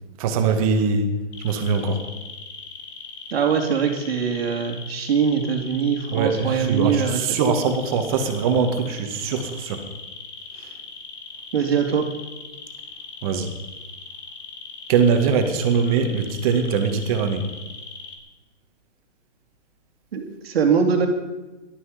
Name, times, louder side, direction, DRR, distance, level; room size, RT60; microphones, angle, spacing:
voice 1, 0.2-1.1 1.4-2.0 6.1-9.8 13.2-13.5 14.9-17.4, right 5 dB, 30° right, 5 dB, 2.0 m, -22 dB
sound 1, 1.3-18.2, left 5 dB, 60° left, 3.4 m, -39 dB
voice 2, 3.3-7.4 11.5-12.1 20.1-21.1, right 6 dB, 55° right, 3 dB, 2.5 m, -22 dB
18.0 x 12.5 x 5.2 m, 1.1 s
hypercardioid pair, 155°, 36 cm